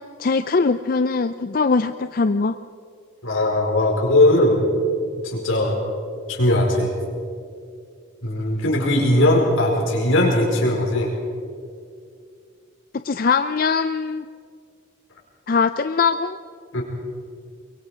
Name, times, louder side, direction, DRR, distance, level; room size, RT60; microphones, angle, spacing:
voice 1, 0.0-2.6 13.0-14.3 15.5-16.4, left 4 dB, 45° left, 10 dB, 0.4 m, -21 dB
voice 2, 3.2-4.6 5.2-5.8 6.3-6.9 8.2-11.1 16.7-16.8, left 1 dB, 75° left, -1 dB, 4.9 m, -19 dB
23.0 x 23.0 x 5.1 m, 2.3 s
head